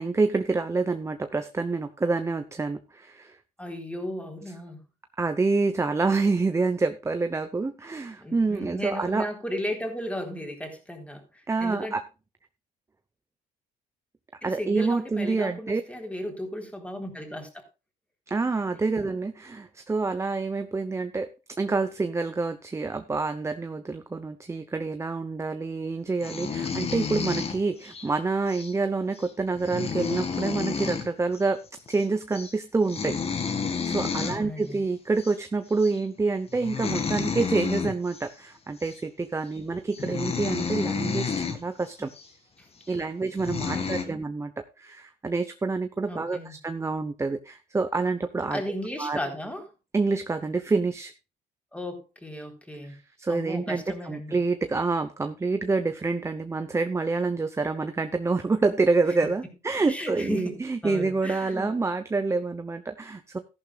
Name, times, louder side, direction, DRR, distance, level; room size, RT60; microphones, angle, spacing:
voice 1, 0.0-3.4 5.2-9.3 11.5-12.0 14.4-15.8 18.3-21.3 21.6-31.6 31.9-33.2 33.8-42.1 42.9-48.6 49.0-49.2 49.9-51.1 52.8-63.4, right 3 dB, 15° right, 9 dB, 0.9 m, -27 dB
voice 2, 3.6-4.8 8.2-12.0 14.4-17.6 34.2-34.8 42.6-42.7 43.7-44.2 46.1-46.6 48.5-49.6 51.7-52.9 53.3-54.3 59.9-60.6 60.8-61.7, left 1 dB, 5° left, 3 dB, 3.9 m, -35 dB
sound 1, 26.2-28.1 28.5-28.7 29.2-29.3 29.5-31.1 31.3-31.5 31.8-32.1 32.3-32.5 32.9-34.4 35.2-35.3 35.8-36.0 36.5-38.3 38.8-39.0 39.6-39.7 39.9-41.6 42.1-42.2 42.9-43.0 43.4-44.0, left 6 dB, 35° left, 2.1 m, -30 dB
14.0 x 11.5 x 2.4 m, 0.29 s
cardioid pair, 110°, 17 cm